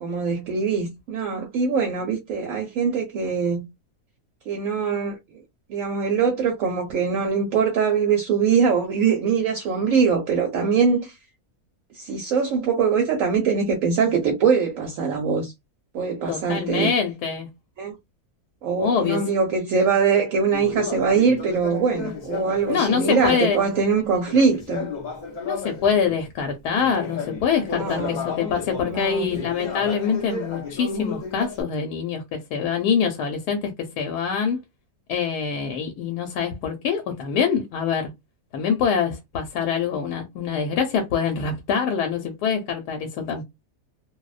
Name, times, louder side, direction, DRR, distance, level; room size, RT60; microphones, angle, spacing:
voice 1, 0.0-3.6 4.5-5.2 5.7-11.1 11.9-15.5 15.9-16.9 17.8-17.9 18.6-24.9 27.8-28.2 28.9-29.4, right 5 dB, 65° right, 0.9 m, -22 dB
voice 2, 16.3-17.5 18.8-19.2 22.7-23.6 25.4-34.6 35.1-38.1 38.5-43.4, left 6 dB, 90° left, 1.1 m, -25 dB
Conversation, 20.5-26.2 26.7-31.6, left 4 dB, 65° left, 0.4 m, -33 dB
2.6 x 2.0 x 2.3 m
omnidirectional pair, 1.6 m